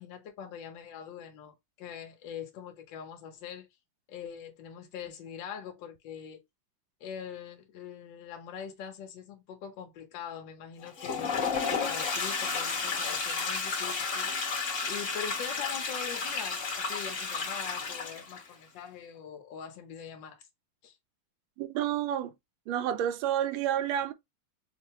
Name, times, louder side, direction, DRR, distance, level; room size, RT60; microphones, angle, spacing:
voice 1, 0.0-3.7 4.1-6.4 7.0-11.3 11.7-14.3 14.9-20.4 20.8-20.9, left 8 dB, 70° left, 1.4 m, -43 dB
Toilet flush, 10.8-18.5, left 5 dB, 40° left, 1.4 m, -32 dB
voice 2, 21.6-22.3 22.7-24.1, right 10 dB, 80° right, 1.3 m, -29 dB
5.1 x 2.1 x 2.7 m
omnidirectional pair, 2.2 m